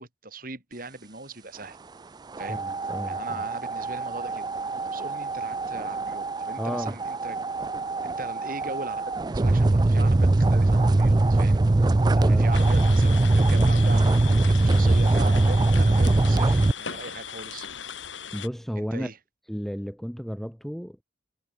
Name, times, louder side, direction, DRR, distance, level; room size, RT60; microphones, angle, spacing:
voice 1, 0.0-1.8 2.4-2.6 3.1-7.4 8.0-11.6 12.3-17.7 18.8-19.2, right 2 dB, 50° right, 5.3 m, -40 dB
sound 1, 2.3-16.7, right 2 dB, 20° right, 0.4 m, -22 dB
voice 2, 2.5-3.4 6.6-6.9 12.1-12.6 18.3-19.1 19.5-21.0, equal, ahead, 1.5 m, -32 dB
sound 2, 12.5-18.5, left 7 dB, 85° left, 5.3 m, -38 dB
head